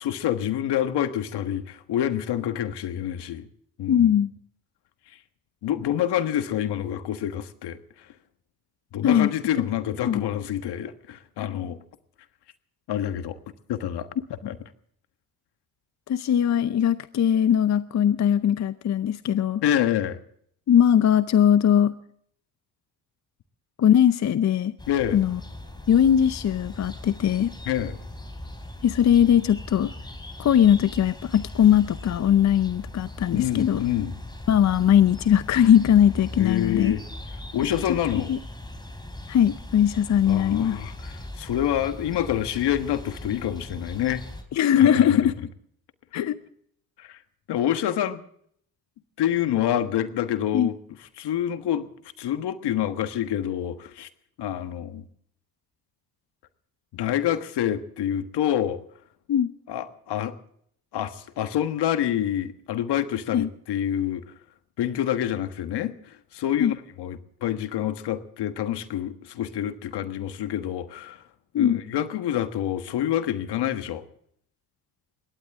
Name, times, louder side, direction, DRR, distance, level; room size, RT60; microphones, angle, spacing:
voice 1, 0.0-3.5 3.8-4.1 5.6-8.1 8.9-11.8 12.9-13.4 13.7-14.1 14.4-14.6 19.6-20.2 24.9-25.2 27.7-28.0 33.3-34.1 36.4-37.0 37.5-38.4 40.3-44.2 44.7-45.3 46.1-46.3 47.0-47.2 47.5-48.2 49.2-50.8 51.2-51.9 52.2-54.1 54.4-55.0 56.9-58.8 59.7-60.4 60.9-64.2 64.8-71.2 71.5-74.0, left 11 dB, 65° left, 9 dB, 1.5 m, -27 dB
voice 2, 3.9-4.3 9.0-9.3 10.0-10.2 14.4-14.5 16.1-19.6 20.7-22.0 23.8-24.7 25.1-25.4 25.9-27.5 28.8-29.9 30.4-33.8 34.5-36.9 38.3-38.4 39.3-40.8 44.5-45.3 46.1-46.3 50.5-50.7 59.3-59.5 63.3-63.5 66.6-66.7 71.5-71.8, left 9 dB, 40° left, 14 dB, 0.7 m, -20 dB
sound 1, 24.8-44.4, left 1 dB, 10° left, 3.6 m, -39 dB
21.5 x 17.5 x 3.6 m, 0.67 s
supercardioid pair, 80°, 43 cm